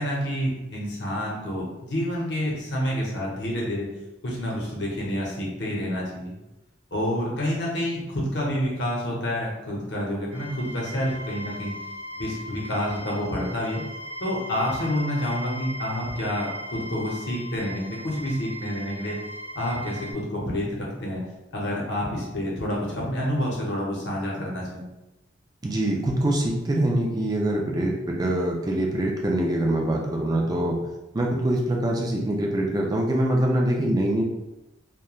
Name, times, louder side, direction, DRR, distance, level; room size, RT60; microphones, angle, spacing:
voice 1, 0.0-3.9 4.2-6.3 6.9-11.7 12.1-13.8 14.2-19.2 19.5-21.2 21.5-24.9, equal, 60° left, -3 dB, 0.7 m, -28 dB
sound 1, 10.3-20.1, equal, 85° right, 0.6 m, -38 dB
voice 2, 25.6-30.8 31.1-34.2, right 1 dB, 20° right, 0 dB, 0.3 m, -24 dB
3.0 x 2.1 x 2.3 m, 0.98 s
head